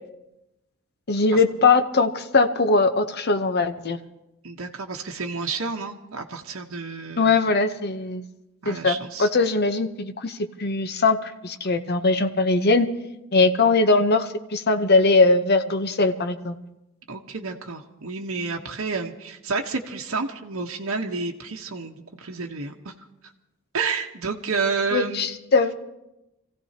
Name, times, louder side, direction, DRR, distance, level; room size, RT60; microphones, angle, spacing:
voice 1, 1.1-4.0 7.2-8.2 8.7-12.9 13.3-16.5 24.9-25.7, left 3 dB, 50° left, 9 dB, 0.9 m, -21 dB
voice 2, 4.4-7.4 8.6-9.3 17.1-22.9 23.7-25.4, right 4 dB, 70° right, 1 dB, 1.0 m, -30 dB
26.5 x 16.0 x 2.9 m, 0.93 s
head